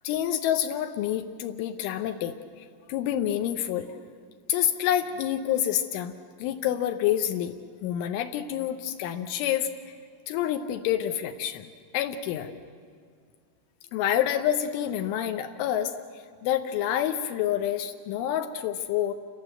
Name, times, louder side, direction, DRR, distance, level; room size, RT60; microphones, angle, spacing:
voice 1, 0.0-3.9 4.5-6.1 6.4-7.5 7.8-9.9 10.3-11.7 11.9-12.5 13.9-19.1, left 11 dB, 85° left, 7 dB, 3.4 m, -28 dB
28.5 x 27.0 x 7.8 m, 2.1 s
omnidirectional pair, 5.4 m